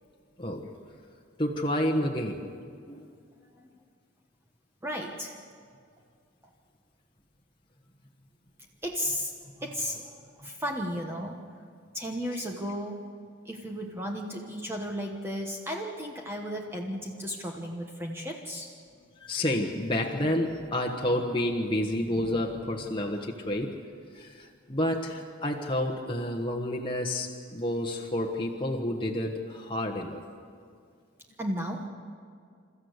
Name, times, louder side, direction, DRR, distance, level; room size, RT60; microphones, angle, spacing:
voice 1, 0.4-0.7 1.4-2.4 2.9-3.1 10.4-10.5 12.3-12.4 18.9-23.8 24.1-30.2, left 1 dB, 25° left, 0 dB, 1.3 m, -30 dB
voice 2, 4.8-5.3 8.8-9.3 9.6-11.4 11.9-13.0 13.4-18.7 31.4-31.9, equal, 10° right, 1 dB, 1.2 m, -34 dB
28.0 x 14.0 x 8.1 m, 2.2 s
head